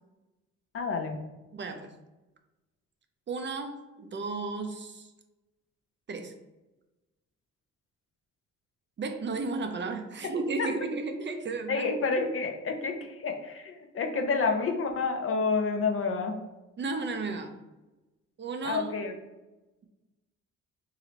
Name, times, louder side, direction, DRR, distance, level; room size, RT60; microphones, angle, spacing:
voice 1, 0.7-1.1 10.6-10.7 11.7-16.4 18.6-19.1, left 4 dB, 45° left, 4 dB, 0.7 m, -29 dB
voice 2, 1.5-1.9 3.3-5.1 6.1-6.3 9.0-11.9 16.8-17.5 18.4-18.9, right 3 dB, 40° right, 6 dB, 0.5 m, -33 dB
3.1 x 3.0 x 3.8 m, 1.1 s
cardioid pair, 90°, 30 cm